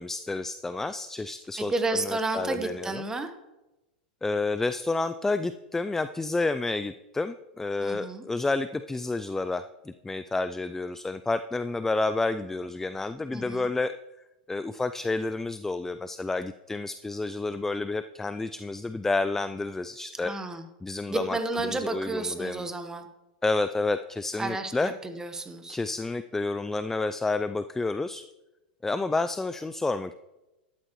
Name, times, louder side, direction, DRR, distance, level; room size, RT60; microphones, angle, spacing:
voice 1, 0.0-1.7 2.0-3.0 4.2-13.9 14.5-20.3 20.8-21.4 21.6-22.6 23.4-24.9 25.7-28.2 28.8-30.1, left 3 dB, 10° left, 12 dB, 0.4 m, -30 dB
voice 2, 1.6-3.3 7.8-8.2 13.3-13.7 20.2-20.7 21.1-23.1 24.4-25.8, right 2 dB, 10° right, 7 dB, 1.2 m, -31 dB
12.5 x 11.5 x 3.1 m, 1.0 s
hypercardioid pair, 110°, 5 cm